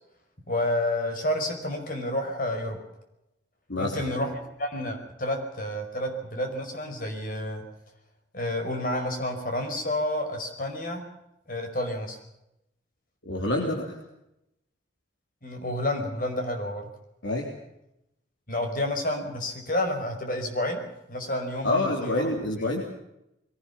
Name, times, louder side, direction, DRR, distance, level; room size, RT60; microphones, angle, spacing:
voice 1, 0.5-2.8 3.8-7.6 8.3-11.0 11.5-12.2 15.4-16.8 18.5-20.8 21.1-22.3 22.6-22.7, left 1 dB, 50° left, 5 dB, 5.2 m, -30 dB
voice 2, 3.7-4.1 13.3-14.0 17.2-17.5 21.6-22.8, left 2 dB, 90° left, 0 dB, 3.8 m, -27 dB
23.0 x 18.5 x 7.3 m, 0.85 s
head